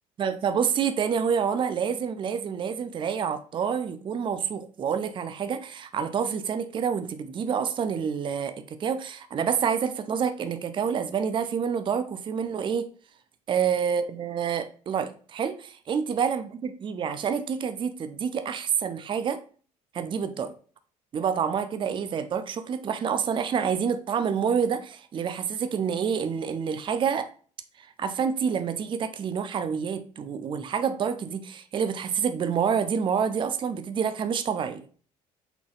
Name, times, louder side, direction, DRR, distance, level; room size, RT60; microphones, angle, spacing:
voice 1, 0.2-12.9 13.5-19.4 19.9-20.5 21.1-27.3 27.8-34.8, right 7 dB, 25° right, 11 dB, 0.5 m, -28 dB
5.6 x 4.0 x 2.3 m, 0.42 s
figure-of-eight pair, 55°, 19 cm